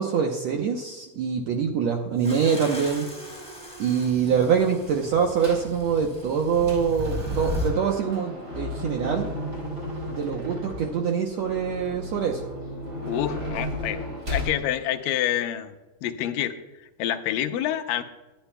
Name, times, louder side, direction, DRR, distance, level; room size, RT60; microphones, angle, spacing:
voice 1, 0.0-3.1 3.8-9.3 10.1-12.4, right 7 dB, 75° right, 2 dB, 1.5 m, -24 dB
sound 1, 2.2-7.7, left 1 dB, ahead, 3.1 m, -35 dB
sound 2, 5.4-5.7 6.2-14.6, left 1 dB, 20° right, 4.4 m, -34 dB
voice 2, 13.1-14.0 14.3-15.8 16.0-16.6 17.0-18.0, left 11 dB, 75° left, 7 dB, 2.2 m, -27 dB
22.0 x 11.5 x 2.2 m, 1.1 s
omnidirectional pair, 4.2 m